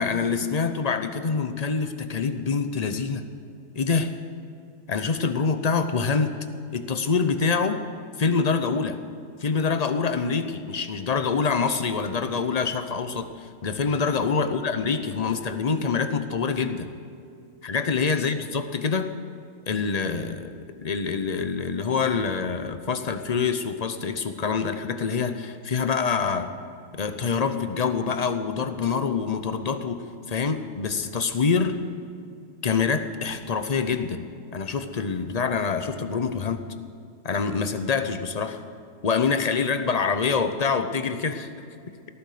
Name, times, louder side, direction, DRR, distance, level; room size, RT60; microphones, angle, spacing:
voice 1, 0.0-3.3 3.7-4.1 4.9-6.4 6.7-7.8 8.2-9.0 9.4-16.9 17.6-19.1 19.7-20.5 20.8-26.5 26.9-30.0 30.3-31.8 32.6-34.3 34.5-36.6 37.2-38.6 39.0-41.5, left 5 dB, 35° left, 9 dB, 0.8 m, -25 dB
18.5 x 14.0 x 5.0 m, 2.4 s
omnidirectional pair, 1.3 m